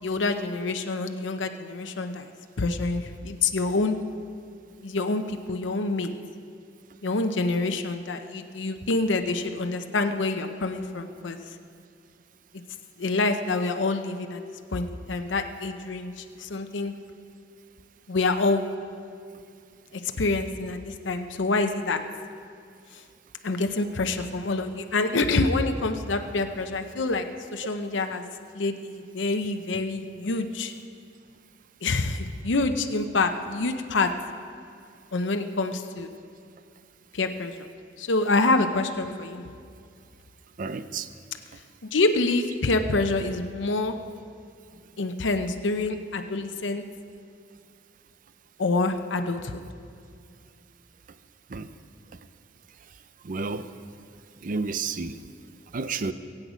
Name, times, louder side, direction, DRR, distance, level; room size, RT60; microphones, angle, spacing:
voice 1, 0.0-2.3 2.6-4.0 4.8-6.1 7.0-11.4 13.0-14.4 14.7-16.9 18.1-18.6 19.9-22.0 22.9-23.0 23.4-27.3 27.5-28.3 28.5-30.7 31.8-34.1 35.1-36.1 37.1-37.7 38.0-39.4 41.8-44.0 45.0-46.8 48.6-49.6, left 3 dB, 85° left, 7 dB, 0.8 m, -26 dB
voice 2, 40.6-41.1 51.5-51.7 53.2-53.7 54.4-55.2 55.7-56.1, right 4 dB, 45° right, 12 dB, 0.5 m, -30 dB
22.5 x 8.6 x 5.1 m, 2.4 s
head